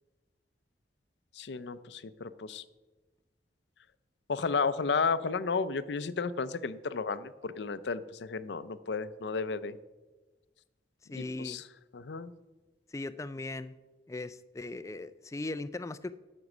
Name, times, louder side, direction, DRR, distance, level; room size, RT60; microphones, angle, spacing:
voice 1, 1.4-2.6 4.3-9.8 11.1-11.6 11.9-12.3, left 4 dB, 80° left, 15 dB, 0.5 m, -33 dB
voice 2, 11.1-11.6 12.9-13.7 14.1-16.1, left 2 dB, 15° left, 14 dB, 0.3 m, -38 dB
13.0 x 5.4 x 6.0 m, 1.2 s
head